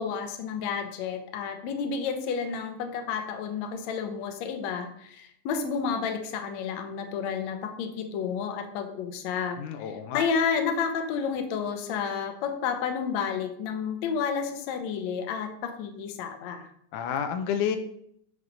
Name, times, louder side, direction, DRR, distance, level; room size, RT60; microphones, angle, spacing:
voice 1, 0.0-16.7, left 6 dB, 70° left, 6 dB, 2.1 m, -31 dB
voice 2, 9.6-10.2 16.9-17.8, left 8 dB, 90° left, 8 dB, 2.2 m, -29 dB
7.4 x 6.4 x 5.2 m, 0.70 s
omnidirectional pair, 3.6 m